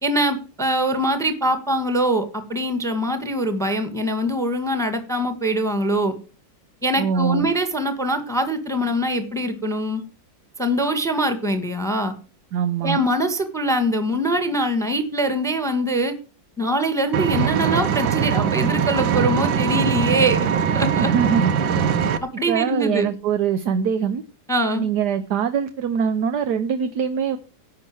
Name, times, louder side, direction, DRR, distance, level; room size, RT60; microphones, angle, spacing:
voice 1, 0.0-6.1 6.8-10.0 10.6-12.1 12.8-16.1 16.6-20.4 20.7-21.1 22.4-23.1 24.5-24.9, right 1 dB, ahead, 1.4 m, -23 dB
voice 2, 7.0-7.5 12.5-13.0 21.0-21.5 22.5-24.2 24.7-27.4, right 7 dB, 65° right, 1.4 m, -23 dB
Engine, 17.1-22.2, right 7 dB, 80° right, 1.7 m, -21 dB
11.0 x 5.8 x 7.8 m
omnidirectional pair, 2.0 m